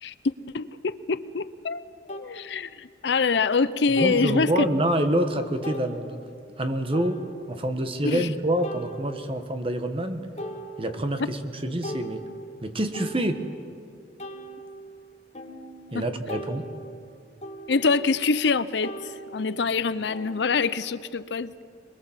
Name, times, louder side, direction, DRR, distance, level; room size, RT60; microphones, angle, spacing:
voice 1, 0.0-4.7 8.0-8.3 15.9-16.0 17.7-21.7, left 4 dB, 65° left, 15 dB, 0.6 m, -25 dB
sound 1, 1.2-1.3 2.1-2.3 4.0-4.4 4.9-5.0 5.6-5.9 6.9-7.6 8.6-9.5 9.9-10.1 10.4-11.2 11.6-13.7 14.2-18.5 18.8-21.1, right 1 dB, 35° left, 1.8 m, -40 dB
voice 2, 4.0-6.2 6.6-7.2 7.5-10.3 10.8-12.2 12.6-13.4 15.9-16.7, right 1 dB, 30° right, 7 dB, 1.3 m, -26 dB
23.0 x 22.5 x 7.3 m, 2.4 s
head